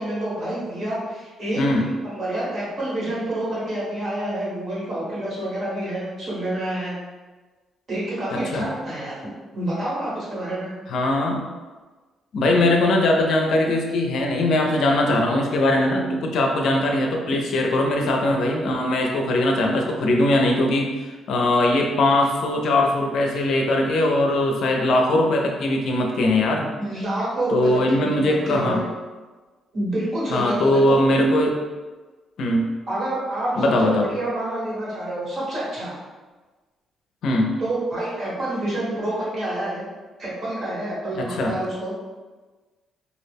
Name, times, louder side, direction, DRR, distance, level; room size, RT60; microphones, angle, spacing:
voice 1, 0.0-6.9 7.9-9.2 9.5-10.7 26.8-28.9 29.7-31.0 32.9-36.0 37.6-39.8 40.2-41.9, right 1 dB, 50° right, -7 dB, 1.3 m, -28 dB
voice 2, 1.6-1.9 8.3-8.6 10.9-11.4 12.3-26.7 27.5-28.8 30.3-31.5 32.4-32.7 33.6-34.1 37.2-37.6 41.1-41.6, left 1 dB, 70° left, 1 dB, 0.4 m, -20 dB
2.3 x 2.0 x 3.3 m, 1.3 s
cardioid pair, 90°, 0 cm